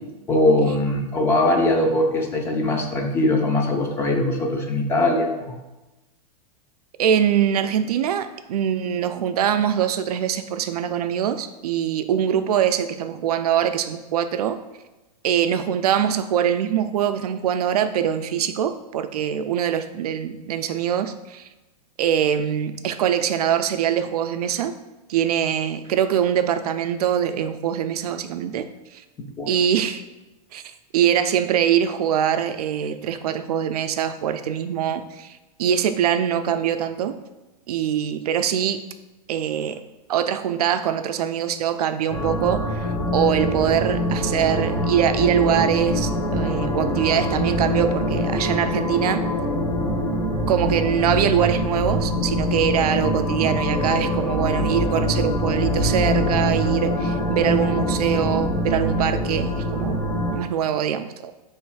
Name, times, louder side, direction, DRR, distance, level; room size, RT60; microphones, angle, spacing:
voice 1, 0.3-5.5 29.4-29.5, left 1 dB, 15° left, 3 dB, 0.4 m, -21 dB
voice 2, 7.0-14.6 15.2-21.5 22.0-24.7 25.1-28.7 28.9-29.0 29.5-30.0 30.5-30.6 30.9-37.2 37.7-38.8 39.3-39.8 40.1-49.2 50.5-60.0 60.3-61.3, right 9 dB, 90° right, 9 dB, 0.4 m, -23 dB
sound 1, 42.1-60.4, equal, 90° left, 1.4 m, -24 dB
3.2 x 3.1 x 4.7 m, 1.1 s
supercardioid pair, 155°, 19 cm